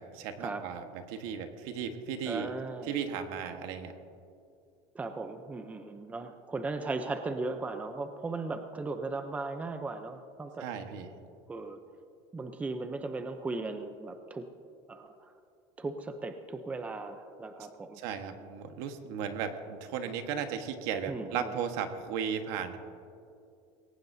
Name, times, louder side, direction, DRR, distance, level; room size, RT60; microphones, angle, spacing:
voice 1, 0.0-2.5 2.8-3.9 10.6-11.1 18.0-22.8, right 7 dB, 70° right, 6 dB, 1.4 m, -35 dB
voice 2, 2.3-2.9 4.9-10.7 11.5-11.8 12.3-14.5 14.9-15.3 15.8-18.0 21.1-21.5, right 3 dB, 10° right, 7 dB, 0.6 m, -37 dB
21.5 x 17.5 x 2.7 m, 2.5 s
cardioid pair, 155°, 12 cm